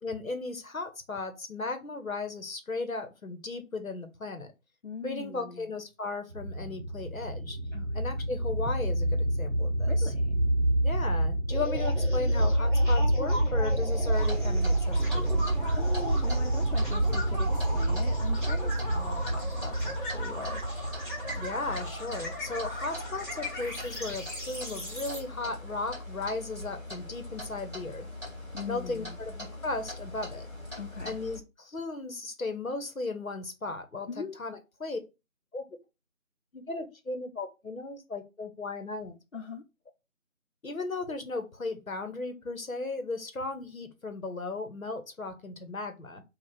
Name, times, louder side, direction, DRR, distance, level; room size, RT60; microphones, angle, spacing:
voice 1, 0.0-4.5 5.0-7.6 7.9-10.1 10.8-15.4 21.4-28.1 28.7-30.5 31.0-35.0 35.5-35.6 36.5-39.2 40.6-46.2, left 3 dB, 75° left, 1.0 m, -36 dB
voice 2, 4.8-5.7 7.7-7.9 9.9-10.4 15.7-20.8 28.5-29.2 30.8-31.2 34.1-34.3 39.3-39.6, left 5 dB, 60° left, 0.5 m, -41 dB
sound 1, 6.3-23.3, right 1 dB, 50° right, 0.7 m, -28 dB
sound 2, 11.5-25.2, equal, 35° left, 1.2 m, -39 dB
Clock, 14.1-31.4, left 1 dB, 20° left, 1.8 m, -42 dB
4.2 x 2.4 x 3.4 m
figure-of-eight pair, 175°, 41 cm